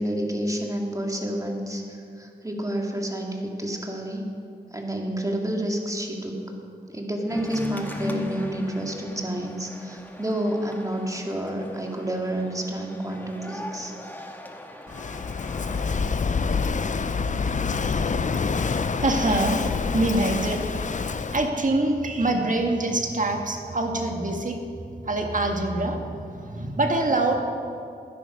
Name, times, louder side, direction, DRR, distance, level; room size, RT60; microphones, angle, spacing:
voice 1, 0.0-4.3 4.7-6.5 6.9-14.0, right 1 dB, 20° right, 1 dB, 2.3 m, -29 dB
sound 1, 7.3-16.2, left 1 dB, 10° left, 1.5 m, -37 dB
Walk footsteps / Wind / Waves surf, 14.9-21.5, left 5 dB, 45° left, 0.6 m, -26 dB
voice 2, 19.0-19.7 19.9-20.6 21.2-24.6 25.0-27.4, right 2 dB, 45° right, 3 dB, 1.8 m, -25 dB
12.5 x 10.0 x 5.3 m, 2.4 s
cardioid pair, 45°, 18 cm